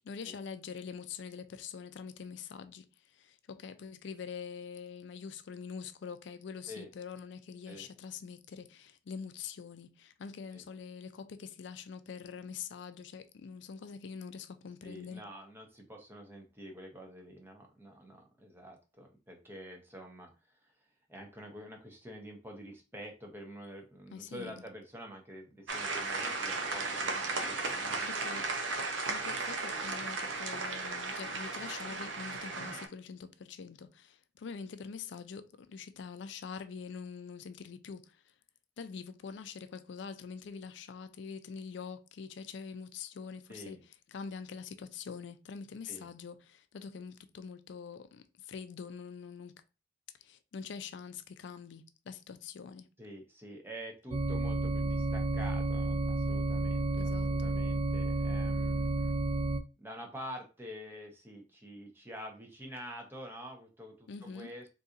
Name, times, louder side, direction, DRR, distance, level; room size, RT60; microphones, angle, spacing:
voice 1, 0.0-15.2 24.1-24.5 27.4-27.5 28.1-28.5 29.1-38.3 38.8-43.8 44.1-49.6 50.2-52.9 56.9-57.3 64.1-64.5, left 6 dB, 65° left, 0.4 m, -44 dB
voice 2, 14.8-20.7 21.1-28.1 43.5-43.8 45.9-46.1 53.0-59.2 59.8-64.7, equal, 10° right, 0.8 m, -47 dB
sound 1, 25.7-32.9, right 3 dB, 75° right, 0.6 m, -35 dB
sound 2, 54.1-59.6, right 2 dB, 30° right, 0.3 m, -31 dB
4.0 x 2.7 x 2.5 m
head